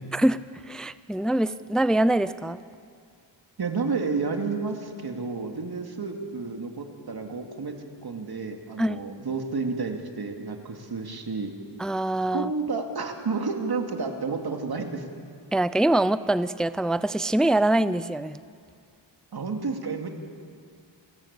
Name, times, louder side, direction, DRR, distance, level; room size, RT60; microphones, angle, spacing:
voice 1, 0.7-2.6 8.8-9.0 11.8-12.5 15.5-18.4, right 1 dB, ahead, 15 dB, 0.5 m, -24 dB
voice 2, 3.6-11.5 12.3-15.1 19.3-20.1, right 4 dB, 55° right, 4 dB, 2.6 m, -31 dB
28.5 x 14.0 x 8.4 m, 2.2 s
wide cardioid pair, 90°, 44 cm